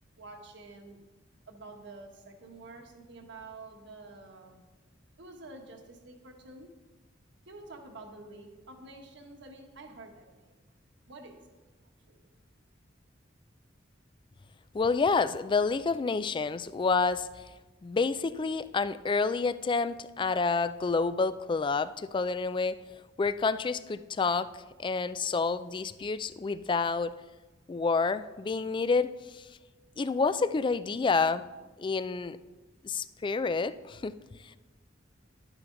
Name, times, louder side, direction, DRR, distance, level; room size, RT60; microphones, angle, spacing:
voice 1, 0.1-1.0 1.5-4.6 5.2-6.7 7.5-10.5 11.1-11.6 12.1-12.3, right 2 dB, 65° right, 4 dB, 1.4 m, -48 dB
voice 2, 14.7-17.3 17.8-22.8 23.2-24.5 24.8-27.2 27.7-29.5 30.0-31.4 31.8-32.4 32.8-34.1, left 4 dB, 25° left, 15 dB, 0.3 m, -28 dB
11.0 x 9.0 x 3.9 m, 1.2 s
head